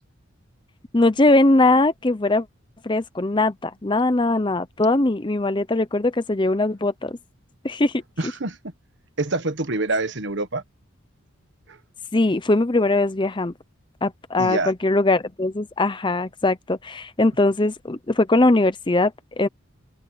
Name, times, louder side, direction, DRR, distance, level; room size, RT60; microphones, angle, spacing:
voice 1, 0.9-2.5 2.8-7.2 7.6-8.0 12.1-13.5 14.0-19.5, left 2 dB, 20° left, 0.6 m, -20 dB
voice 2, 8.2-8.7 9.2-10.6 11.7-11.8 14.4-14.7, right 2 dB, 55° right, 1.5 m, -26 dB
head